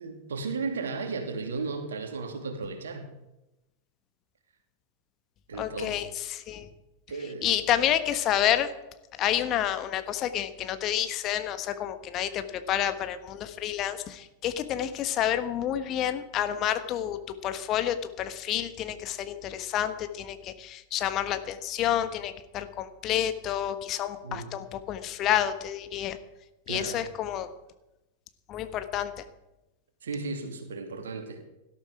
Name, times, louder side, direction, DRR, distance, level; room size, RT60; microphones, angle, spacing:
voice 1, 0.0-3.1 5.5-6.1 7.1-7.5 24.2-24.5 26.7-27.1 30.0-31.4, right 4 dB, 65° right, 6 dB, 2.7 m, -35 dB
voice 2, 5.5-6.7 7.4-8.7 9.2-26.2 26.7-27.5 28.5-29.1, left 11 dB, 35° left, 10 dB, 1.4 m, -29 dB
18.0 x 13.0 x 4.9 m, 0.95 s
figure-of-eight pair, 90°, 0 cm